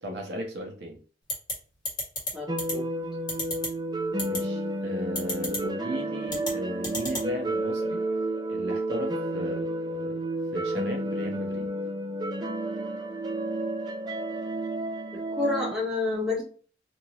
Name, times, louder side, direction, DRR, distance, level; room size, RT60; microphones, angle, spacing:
voice 1, 0.0-1.0 4.2-8.0 8.5-10.2 10.5-11.7, equal, 65° right, 1 dB, 1.1 m, -36 dB
sound 1, 1.3-1.5 1.9-2.3 2.6-2.7 3.3-3.7 4.2-4.4 5.2-5.6 6.3-6.5 6.8-7.2, left 2 dB, 25° left, 1.4 m, -29 dB
voice 2, 2.3-2.9 9.3-9.6 15.4-16.4, left 3 dB, 5° right, -5 dB, 1.5 m, -29 dB
sound 2, 2.5-15.7, right 1 dB, 20° right, 0.4 m, -31 dB
3.7 x 3.0 x 2.4 m, 0.40 s
head